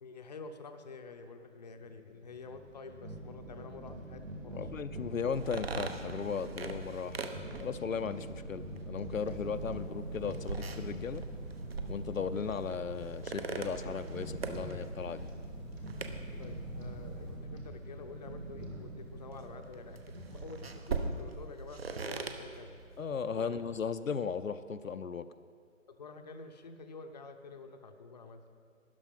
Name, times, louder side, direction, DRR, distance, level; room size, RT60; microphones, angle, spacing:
voice 1, 0.0-4.7 16.4-22.8 23.3-23.6 25.9-28.5, left 4 dB, 30° left, 6 dB, 0.7 m, -48 dB
sound 1, 1.8-21.2, right 1 dB, 75° right, 2.7 m, -44 dB
voice 2, 4.5-7.3 7.6-11.2 11.9-15.3 23.0-25.3, left 6 dB, 80° left, 10 dB, 0.6 m, -36 dB
sound 2, 5.3-23.8, right 4 dB, 50° right, 1.0 m, -43 dB
sound 3, 9.2-17.4, equal, 5° right, 0.6 m, -50 dB
13.0 x 10.0 x 5.5 m, 2.1 s
figure-of-eight pair, 140°, 40 cm